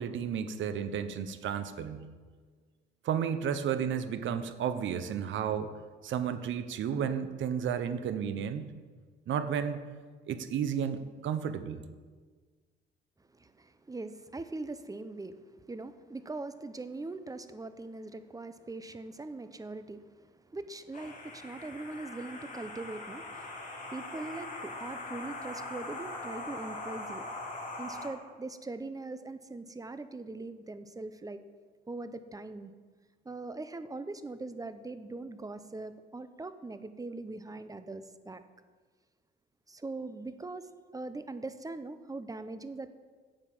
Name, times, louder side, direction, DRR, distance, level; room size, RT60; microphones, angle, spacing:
voice 1, 0.0-2.1 3.0-5.7 6.0-8.7 9.3-9.8 10.3-11.8, right 8 dB, 70° right, 11 dB, 1.0 m, -32 dB
voice 2, 13.3-23.5 23.9-27.3 27.8-31.4 31.9-32.7 33.2-38.4 39.7-42.9, right 2 dB, 15° right, 11 dB, 0.9 m, -41 dB
sound 1, 20.9-28.1, left 2 dB, 40° left, 3.4 m, -41 dB
10.0 x 8.1 x 7.2 m, 1.5 s
cardioid pair, 90°, 20 cm